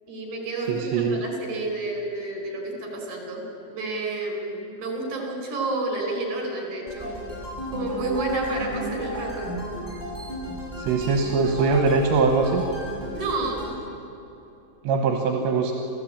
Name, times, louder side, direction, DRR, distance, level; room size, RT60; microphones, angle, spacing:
voice 1, 0.1-7.2 7.7-9.5 13.1-13.8, right 2 dB, 45° right, 2 dB, 6.0 m, -30 dB
voice 2, 0.7-1.2 10.8-12.6 14.9-15.7, right 4 dB, 75° right, 2 dB, 3.6 m, -22 dB
sound 1, 6.9-13.7, equal, 10° right, 7.1 m, -34 dB
27.0 x 16.0 x 8.8 m, 2.9 s
omnidirectional pair, 5.2 m